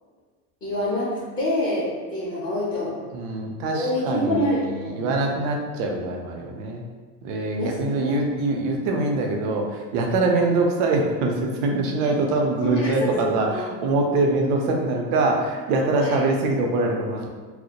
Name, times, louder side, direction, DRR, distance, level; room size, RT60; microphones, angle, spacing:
voice 1, 0.6-3.0 3.7-5.1 7.6-8.3 12.6-13.7 16.0-16.2, left 1 dB, 20° left, -8 dB, 0.3 m, -27 dB
voice 2, 3.1-6.8 7.2-17.3, right 2 dB, 65° right, 1 dB, 0.6 m, -24 dB
2.2 x 2.1 x 2.7 m, 1.4 s
supercardioid pair, 110°, 50 cm